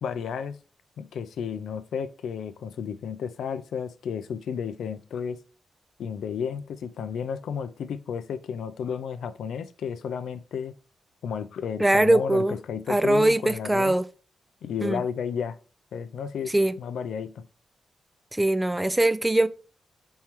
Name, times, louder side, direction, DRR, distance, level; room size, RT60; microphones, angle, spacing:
voice 1, 0.0-0.6 1.0-5.4 6.0-10.7 11.2-14.0 14.6-15.6 15.9-17.4, left 7 dB, 85° left, 0.4 m, -32 dB
voice 2, 11.8-12.6 12.9-14.0 14.8-15.0 16.5-16.7 18.3-19.5, right 1 dB, 15° right, 0.3 m, -21 dB
4.3 x 3.6 x 2.9 m
cardioid pair, 70°, 0 cm